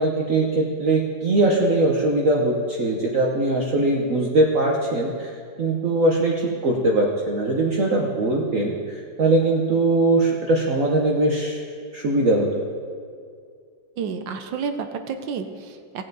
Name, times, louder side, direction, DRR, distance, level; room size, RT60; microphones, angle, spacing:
voice 1, 0.0-5.3 5.6-11.6 11.9-12.6, right 2 dB, 50° right, -2 dB, 1.2 m, -21 dB
voice 2, 14.0-16.0, right 6 dB, 75° right, 8 dB, 1.5 m, -30 dB
17.5 x 7.6 x 4.0 m, 2.2 s
omnidirectional pair, 2.1 m